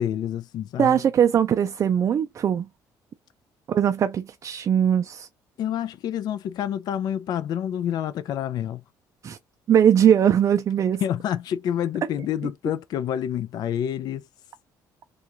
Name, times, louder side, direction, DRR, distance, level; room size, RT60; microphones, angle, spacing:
voice 1, 0.0-1.0 5.6-8.8 11.0-14.3, left 10 dB, 60° left, 0.4 m, -28 dB
voice 2, 0.8-2.7 3.7-5.3 9.2-9.4 9.7-11.0, right 9 dB, 40° right, 0.4 m, -20 dB
3.7 x 2.4 x 2.9 m
cardioid pair, 110°, 8 cm